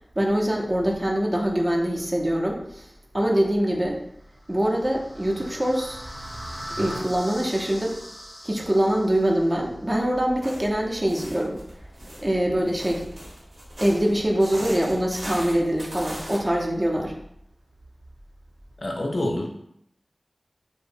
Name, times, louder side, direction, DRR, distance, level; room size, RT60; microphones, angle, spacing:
voice 1, 0.2-2.9 3.1-4.0 4.5-6.0 6.8-8.0 8.4-11.6 12.2-13.1 13.8-17.2, right 1 dB, 30° right, -1 dB, 0.5 m, -24 dB
sound 1, 4.4-9.5, equal, 10° left, 0.6 m, -39 dB
sound 2, 10.4-16.4, equal, 85° right, 0.9 m, -39 dB
voice 2, 18.8-19.5, left 1 dB, 70° left, 1 dB, 0.4 m, -26 dB
2.6 x 2.0 x 2.5 m, 0.74 s
wide cardioid pair, 45°, 0 cm